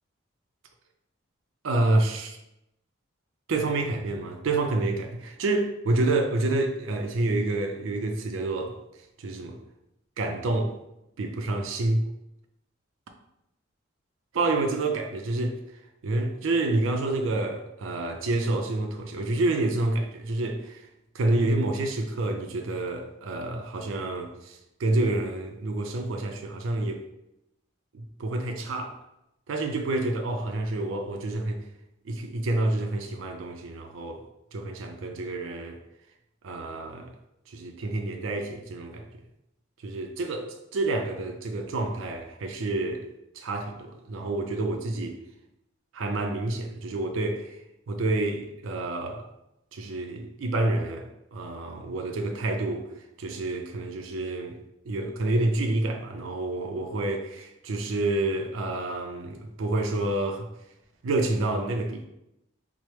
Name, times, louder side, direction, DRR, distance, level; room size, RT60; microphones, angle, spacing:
voice 1, 1.6-2.4 3.5-8.8 9.2-9.6 10.2-10.7 11.2-12.0 14.3-15.6 16.0-20.9 21.1-27.0 27.9-28.9 29.5-31.6 32.0-34.2 34.5-35.8 36.4-37.1 37.5-39.1 39.8-43.0 43.3-45.2 45.9-47.6 47.9-49.3 49.7-52.9 53.2-54.6 54.9-60.5 61.0-62.1, right 2 dB, 80° right, 0.4 m, -28 dB
4.3 x 2.0 x 3.1 m
head